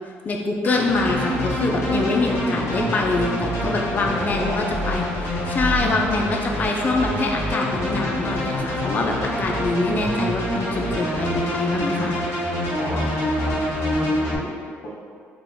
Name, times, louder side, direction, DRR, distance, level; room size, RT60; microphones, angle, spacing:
voice 1, 0.2-12.1, left 3 dB, 35° left, 1 dB, 0.5 m, -24 dB
sound 1, 0.6-14.3, equal, 50° left, 1.2 m, -26 dB
voice 2, 2.5-2.9 4.0-4.7 12.7-14.9, left 1 dB, 70° left, -5 dB, 1.1 m, -35 dB
3.8 x 2.2 x 3.5 m, 2.1 s
cardioid pair, 105°, 5 cm